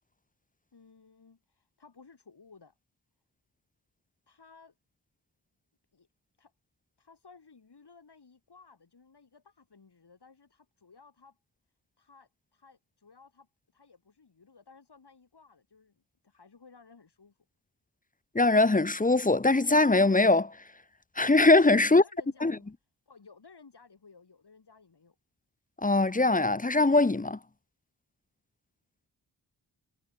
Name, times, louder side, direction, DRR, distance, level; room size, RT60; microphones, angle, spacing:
voice 1, 0.7-2.7 4.3-4.7 5.9-6.1 6.4-6.5 7.0-11.4 12.0-17.4 21.8-22.7 23.1-25.2, left 4 dB, 60° left, 7.7 m, -57 dB
voice 2, 18.3-20.5 21.2-22.0 22.4-22.5 25.8-27.4, left 2 dB, 20° left, 0.8 m, -22 dB
wide cardioid pair, 90°, 44 cm